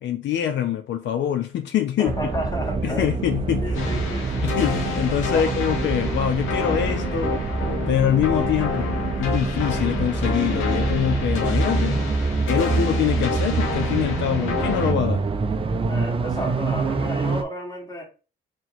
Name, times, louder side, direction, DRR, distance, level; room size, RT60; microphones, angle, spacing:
voice 1, 0.0-2.1 2.8-3.9 4.4-7.3 7.9-12.0 12.5-15.2, left 10 dB, 65° left, 0.5 m, -24 dB
voice 2, 2.0-3.1 3.6-4.5 5.3-5.5 15.8-18.0, equal, 20° left, 1.5 m, -32 dB
sound 1, 2.1-17.4, right 3 dB, 25° right, 0.5 m, -25 dB
sound 2, 3.7-14.9, left 5 dB, 90° left, 1.1 m, -30 dB
3.1 x 2.9 x 4.0 m
cardioid pair, 90°, 20 cm